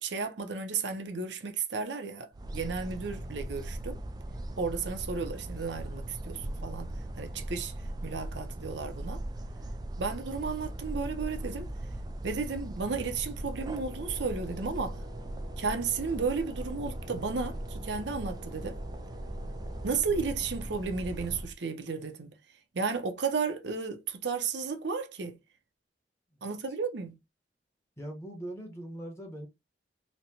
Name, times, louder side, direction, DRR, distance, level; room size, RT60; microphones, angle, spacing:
voice 1, 0.0-4.0 4.6-7.7 8.0-9.2 10.0-11.7 12.2-15.0 15.6-18.8 19.8-22.3 22.7-25.4 26.4-27.2, right 5 dB, 70° right, 0.6 m, -33 dB
sound 1, 2.3-21.5, right 1 dB, 20° right, 0.3 m, -39 dB
sound 2, 13.5-19.9, left 1 dB, 90° right, 1.3 m, -51 dB
voice 2, 28.0-29.5, right 1 dB, 15° left, 0.9 m, -41 dB
4.1 x 2.2 x 2.8 m
head